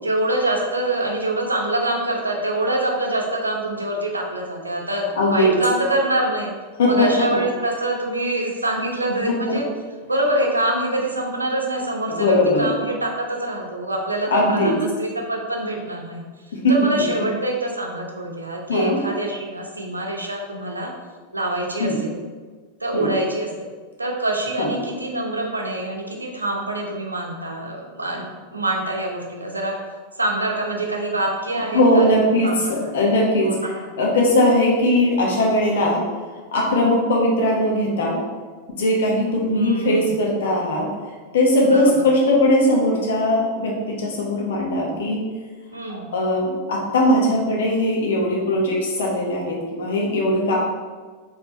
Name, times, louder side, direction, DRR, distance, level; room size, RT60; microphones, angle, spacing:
voice 1, 0.0-5.0 5.3-6.5 6.8-9.7 10.1-16.2 16.7-20.9 21.3-22.2 22.8-23.7 24.0-28.2 28.5-29.8 30.2-32.6 32.8-33.0 33.4-33.9 39.5-40.2 41.6-42.1 45.7-46.1 50.5-50.6, right 1 dB, 80° right, 0 dB, 0.7 m, -25 dB
voice 2, 5.2-5.5 6.8-7.1 7.3-7.4 9.5-9.6 12.1-12.7 14.3-14.7 16.6-16.7 18.7-19.0 21.8-22.0 22.9-23.1 24.6-24.7 31.7-33.5 34.0-36.0 36.5-38.2 38.8-40.9 41.3-45.2 45.9-50.6, left 1 dB, 60° left, -2 dB, 1.0 m, -19 dB
4.5 x 3.4 x 3.1 m, 1.4 s
figure-of-eight pair, 90°, 0 cm